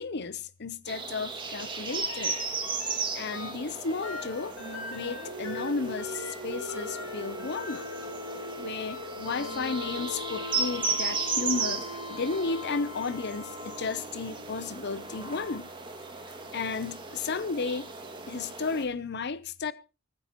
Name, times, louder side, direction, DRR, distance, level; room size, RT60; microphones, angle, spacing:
voice 1, 0.0-2.4 3.1-4.6 4.9-7.9 8.6-15.7 16.5-17.9 18.3-19.7, left 4 dB, 55° left, 0.7 m, -33 dB
sound 1, 0.9-18.9, right 4 dB, 25° right, 2.2 m, -36 dB
sound 2, 1.9-3.0 3.3-14.1 14.9-16.5 18.2-18.3, left 4 dB, 90° left, 4.5 m, -42 dB
Singing, 4.5-8.9 9.1-15.1, right 1 dB, 75° right, 5.9 m, -44 dB
24.5 x 10.0 x 3.0 m
head